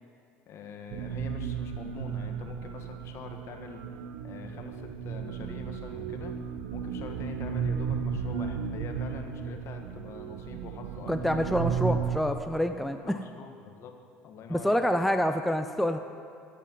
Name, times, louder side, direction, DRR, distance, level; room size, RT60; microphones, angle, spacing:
voice 1, 0.5-3.8 4.2-6.3 6.7-11.4 13.0-13.9 14.2-15.0, left 5 dB, 55° left, 4 dB, 1.6 m, -44 dB
sound 1, 0.9-12.2, right 7 dB, 75° right, 0.8 m, -34 dB
voice 2, 11.1-13.1 14.5-16.0, equal, ahead, 7 dB, 0.6 m, -27 dB
14.0 x 6.6 x 7.8 m, 2.3 s
supercardioid pair, 85°, 6 cm